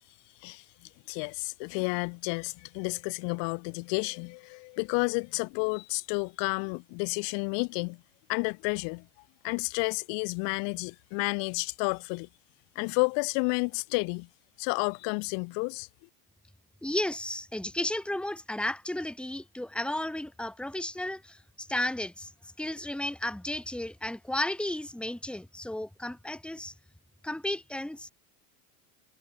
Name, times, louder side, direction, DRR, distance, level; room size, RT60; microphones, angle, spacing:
voice 1, 1.1-8.0 8.3-9.0 9.4-12.3 12.8-14.3 14.6-15.9, left 37 dB, 60° left, 5.6 m, -31 dB
voice 2, 16.8-26.7 27.2-28.1, left 1 dB, ahead, 4.1 m, -33 dB
supercardioid pair, 145°, 47 cm